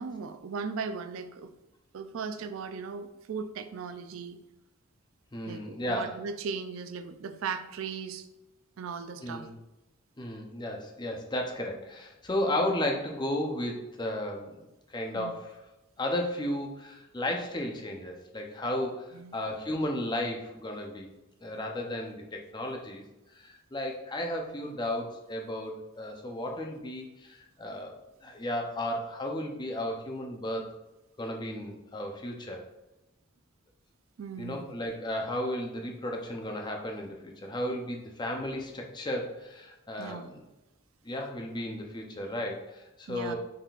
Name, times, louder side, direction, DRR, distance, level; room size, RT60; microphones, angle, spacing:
voice 1, 0.0-1.5 1.9-4.4 5.5-8.3 8.8-9.5 15.1-15.3 19.1-19.3 34.2-34.7 40.0-40.3 43.1-43.3, right 5 dB, 75° right, 9 dB, 0.4 m, -37 dB
voice 2, 5.3-6.2 9.2-9.5 10.2-15.6 16.0-21.1 21.4-23.0 23.3-27.9 28.2-30.7 31.2-32.6 34.4-40.4 41.0-43.3, left 1 dB, 20° left, 1 dB, 0.6 m, -34 dB
5.6 x 3.6 x 2.4 m, 0.98 s
head